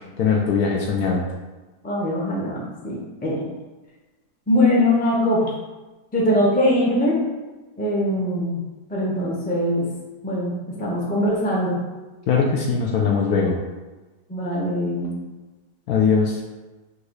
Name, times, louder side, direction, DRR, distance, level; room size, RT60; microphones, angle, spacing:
voice 1, 0.2-1.2 12.3-13.6 15.9-16.4, left 5 dB, 70° left, 0 dB, 1.0 m, -20 dB
voice 2, 1.8-3.3 4.5-5.5 6.1-7.2 7.8-8.6 8.9-9.9 10.2-10.5 10.8-11.8 14.3-15.2, left 1 dB, 10° left, -5 dB, 0.6 m, -21 dB
3.9 x 2.6 x 4.7 m, 1.2 s
omnidirectional pair, 1.8 m